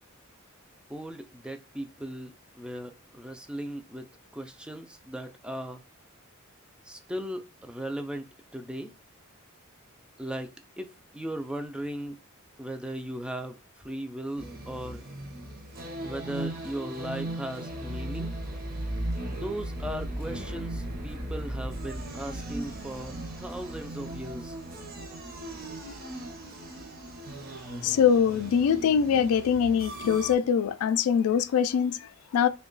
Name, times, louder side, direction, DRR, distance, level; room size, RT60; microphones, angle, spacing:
voice 1, 0.9-4.1 4.3-5.8 6.9-8.9 10.2-10.5 10.8-12.2 12.6-15.0 16.0-18.3 19.3-24.6, right 1 dB, 5° right, 0.3 m, -37 dB
sound 1, 14.4-30.3, right 1 dB, 45° right, 0.7 m, -37 dB
voice 2, 27.8-32.5, left 7 dB, 85° left, 0.3 m, -23 dB
2.8 x 2.2 x 3.8 m
head